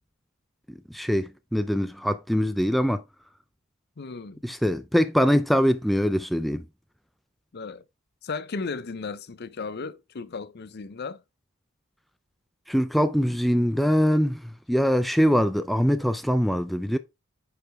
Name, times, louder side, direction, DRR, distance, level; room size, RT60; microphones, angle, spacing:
voice 1, 0.9-3.0 4.4-6.6 12.7-17.0, equal, ahead, 0.3 m, -23 dB
voice 2, 4.0-4.4 7.5-7.8 8.2-11.2, left 4 dB, 50° left, 0.6 m, -35 dB
9.2 x 4.9 x 3.4 m
head